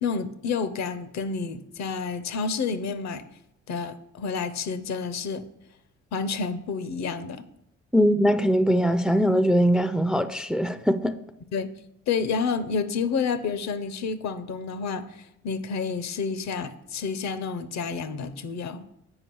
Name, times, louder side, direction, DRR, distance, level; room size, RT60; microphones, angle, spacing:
voice 1, 0.0-3.2 3.7-5.4 6.1-7.4 11.5-11.7 12.1-18.8, left 5 dB, 65° left, 0.7 m, -29 dB
voice 2, 7.9-11.2, equal, 5° right, 0.4 m, -21 dB
7.7 x 4.9 x 4.6 m
supercardioid pair, 70°, 29 cm